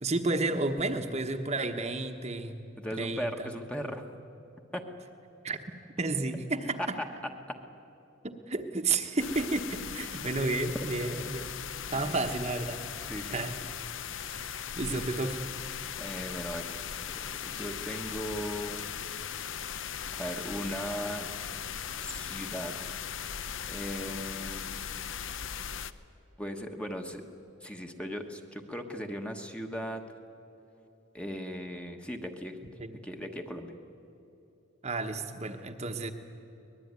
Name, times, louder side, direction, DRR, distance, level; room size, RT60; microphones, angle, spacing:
voice 1, 0.0-2.5 3.0-3.5 5.4-5.6 6.0-6.8 8.2-11.5 11.9-12.8 13.3-13.5 14.3-15.4 32.8-33.0 34.8-36.1, right 3 dB, 30° right, 5 dB, 1.1 m, -31 dB
voice 2, 2.8-4.0 4.7-4.9 6.8-6.9 7.5-7.6 10.0-10.2 11.9-12.3 13.1-13.7 14.8-15.0 16.0-16.7 17.4-18.9 20.1-21.3 22.0-22.7 23.7-24.8 26.4-27.2 27.6-30.0 31.1-32.6 33.0-33.7, equal, 5° left, 4 dB, 1.2 m, -38 dB
sound 1, 9.2-25.9, left 8 dB, 60° left, 0.7 m, -38 dB
23.5 x 20.0 x 9.6 m, 2.9 s
head